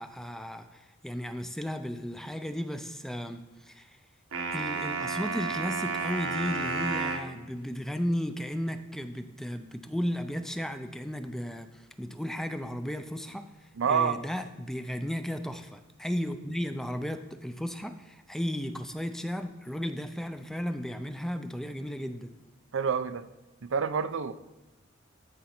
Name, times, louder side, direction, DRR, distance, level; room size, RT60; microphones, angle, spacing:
voice 1, 0.0-3.9 4.5-22.3, equal, ahead, 0.4 m, -35 dB
sound 1, 4.3-7.3, right 4 dB, 85° right, 1.2 m, -31 dB
voice 2, 13.8-14.2 22.7-23.3 23.6-24.3, right 6 dB, 65° right, 0.5 m, -27 dB
14.0 x 5.2 x 4.4 m
head